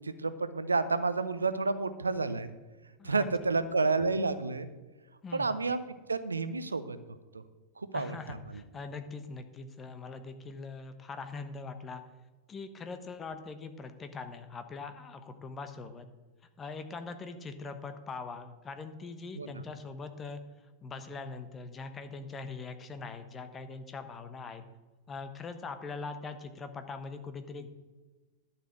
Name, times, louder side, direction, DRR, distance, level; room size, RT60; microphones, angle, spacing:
voice 1, 0.0-2.5 3.0-4.7 5.3-5.8 6.1-7.0 7.8-8.4 19.4-19.6, right 3 dB, 80° right, 12 dB, 0.7 m, -30 dB
voice 2, 5.2-5.6 7.9-12.0 12.5-16.1 16.6-20.4 20.8-24.6 25.1-27.7, left 4 dB, 20° left, 9 dB, 1.1 m, -42 dB
11.5 x 5.9 x 7.7 m, 1.2 s
figure-of-eight pair, 90°, 0 cm